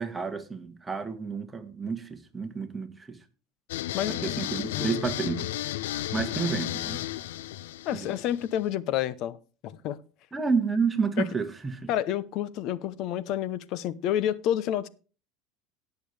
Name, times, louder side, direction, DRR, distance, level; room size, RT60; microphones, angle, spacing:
voice 1, 0.0-3.2 4.1-5.5 6.1-7.0 7.9-8.2 10.3-11.9, right 5 dB, 15° right, 1.7 m, -30 dB
sound 1, 3.7-8.7, left 14 dB, 85° left, 0.5 m, -33 dB
voice 2, 3.9-4.3 4.7-5.0 7.9-9.4 9.6-10.0 11.2-11.3 11.9-14.9, left 11 dB, 60° left, 0.8 m, -29 dB
18.0 x 6.9 x 3.4 m
supercardioid pair, 105°, 0 cm